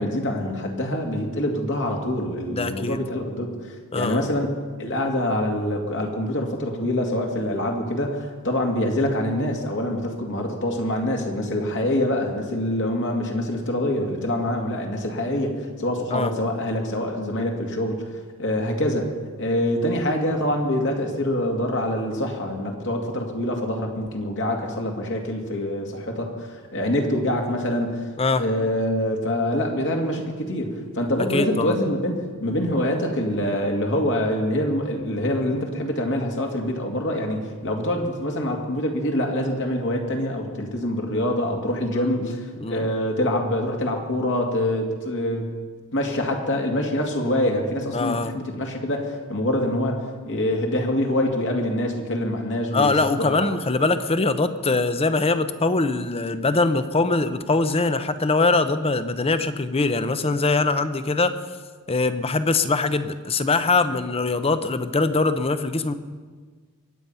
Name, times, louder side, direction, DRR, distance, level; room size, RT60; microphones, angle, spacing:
voice 1, 0.0-4.5 4.8-28.0 28.4-45.6 45.9-53.4, left 1 dB, 55° left, 1 dB, 2.3 m, -25 dB
voice 2, 2.5-3.0 3.9-4.3 16.1-16.3 28.2-28.4 31.3-31.8 41.9-42.9 47.9-48.3 52.7-61.3 61.9-65.9, left 3 dB, 25° left, 11 dB, 0.7 m, -22 dB
22.5 x 9.0 x 5.6 m, 1.5 s
head